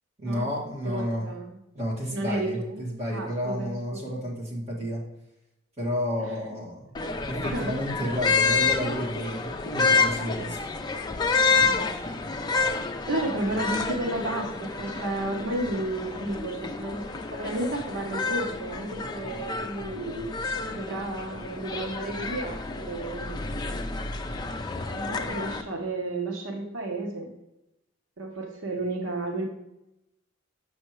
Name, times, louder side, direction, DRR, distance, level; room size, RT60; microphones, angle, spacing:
voice 1, 0.2-1.3 1.7-5.0 5.8-6.9 7.3-10.6, equal, 35° right, -4 dB, 1.8 m, -31 dB
voice 2, 0.8-1.5 2.1-4.2 7.4-7.7 8.1-8.3 13.1-20.3 20.7-23.7 24.9-27.3 28.2-29.4, right 2 dB, 90° right, 2 dB, 1.0 m, -32 dB
sound 1, 6.9-25.6, left 4 dB, 20° left, 0.4 m, -29 dB
6.8 x 6.2 x 3.1 m, 0.90 s
head